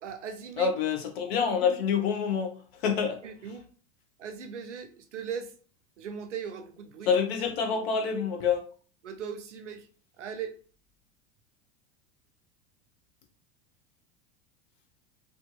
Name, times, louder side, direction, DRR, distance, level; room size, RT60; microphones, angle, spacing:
voice 1, 0.0-0.7 3.2-3.7 4.2-5.5 6.0-7.1 9.0-9.9 10.2-10.5, right 7 dB, 85° right, 0.5 m, -38 dB
voice 2, 0.6-3.2 7.1-8.7, left 6 dB, 60° left, 0.8 m, -27 dB
2.6 x 2.6 x 2.3 m
hypercardioid pair, 90°, 35 cm